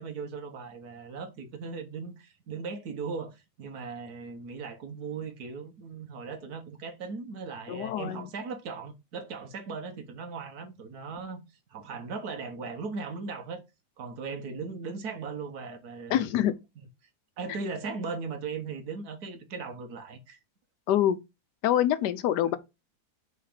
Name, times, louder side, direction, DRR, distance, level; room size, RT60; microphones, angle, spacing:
voice 1, 0.0-11.4 11.7-13.6 14.0-16.2 17.4-20.4, right 4 dB, 70° right, 1.6 m, -38 dB
voice 2, 7.7-8.3 16.1-16.5 20.9-21.2 21.6-22.6, left 11 dB, 85° left, 1.2 m, -25 dB
5.6 x 4.0 x 5.0 m
omnidirectional pair, 1.8 m